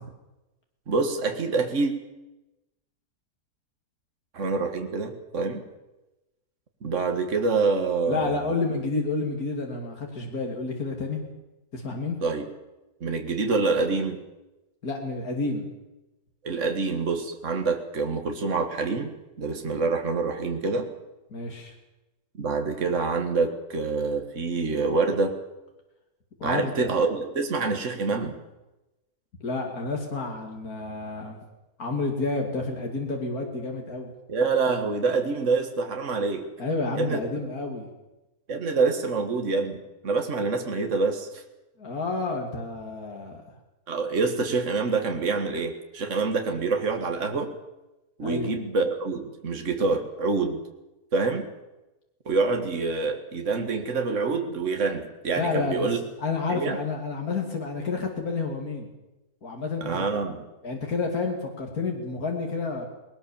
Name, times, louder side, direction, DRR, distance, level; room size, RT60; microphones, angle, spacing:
voice 1, 0.9-1.9 4.3-5.6 6.8-8.6 12.2-12.5 13.0-14.2 16.4-20.9 22.4-25.3 26.4-28.4 34.3-36.5 37.0-37.3 38.5-41.4 43.9-47.5 48.2-50.6 51.1-51.5 52.3-56.0 56.5-56.8 59.8-60.5, right 4 dB, 55° right, 5 dB, 2.1 m, -26 dB
voice 2, 8.1-11.2 11.7-12.2 14.8-15.7 21.3-21.7 26.4-26.9 29.4-31.4 31.8-34.1 36.6-37.9 41.8-43.4 48.2-48.5 55.4-58.9 59.4-59.9 60.6-62.9, left 3 dB, 80° left, 1 dB, 3.1 m, -30 dB
20.0 x 19.5 x 7.2 m, 0.99 s
omnidirectional pair, 1.5 m